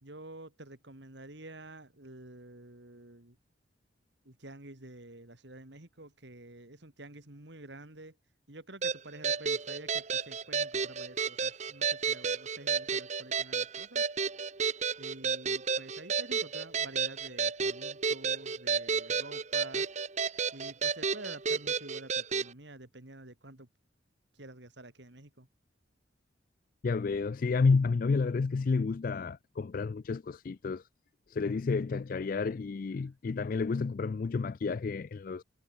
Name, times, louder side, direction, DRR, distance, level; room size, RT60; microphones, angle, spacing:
voice 1, 0.0-3.4 4.2-8.2 8.5-14.1 15.0-19.9 20.5-23.7 24.3-25.5, right 2 dB, 65° right, 2.7 m, -49 dB
sound 1, 8.8-22.5, right 5 dB, 35° right, 1.1 m, -32 dB
voice 2, 26.8-30.9 31.3-35.4, left 4 dB, 45° left, 0.3 m, -30 dB
head